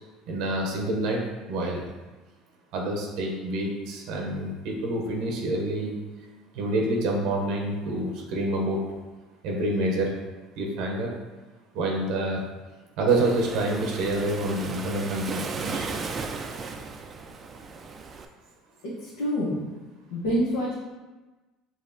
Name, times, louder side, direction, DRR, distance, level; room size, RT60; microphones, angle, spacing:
voice 1, 0.3-1.2 1.5-1.9 2.7-5.9 6.5-8.8 9.4-10.1 10.6-11.1 11.7-12.4 13.0-16.0, right 1 dB, 70° right, 0 dB, 0.7 m, -27 dB
Waves surf, 13.1-18.3, right 4 dB, 35° right, 0.3 m, -36 dB
voice 2, 18.8-19.6 20.1-20.7, equal, 90° left, -7 dB, 0.9 m, -27 dB
4.8 x 2.9 x 2.7 m, 1.2 s
supercardioid pair, 105°, 0 cm